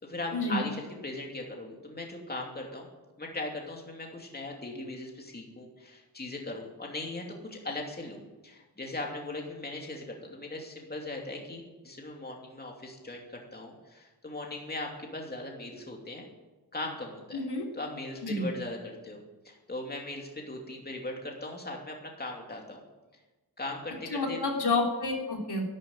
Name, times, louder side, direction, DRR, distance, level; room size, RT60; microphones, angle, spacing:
voice 1, 0.0-2.9 3.2-16.3 16.7-17.4 17.7-19.2 19.4-22.8 23.6-24.4, left 2 dB, 25° left, 0 dB, 2.7 m, -39 dB
voice 2, 17.3-17.6 18.2-18.5 24.1-25.6, left 3 dB, 75° left, 0 dB, 3.5 m, -29 dB
12.5 x 12.0 x 9.4 m, 1.1 s
wide cardioid pair, 140°, 40 cm